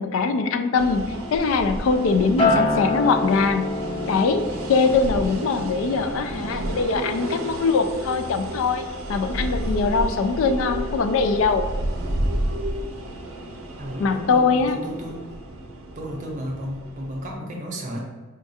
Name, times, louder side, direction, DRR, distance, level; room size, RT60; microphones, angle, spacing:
voice 1, 0.0-3.7 4.1-4.4 4.7-8.8 9.1-11.6 14.0-14.8, left 4 dB, 70° left, 8 dB, 0.3 m, -22 dB
sound 1, 0.8-17.4, right 1 dB, 85° right, 0.6 m, -31 dB
Acoustic guitar, 2.4-6.8 7.2-7.6, left 2 dB, 30° left, 0.7 m, -27 dB
voice 2, 13.8-15.2 16.0-18.0, equal, 40° right, 0 dB, 0.7 m, -33 dB
4.5 x 2.3 x 2.7 m, 1.3 s
head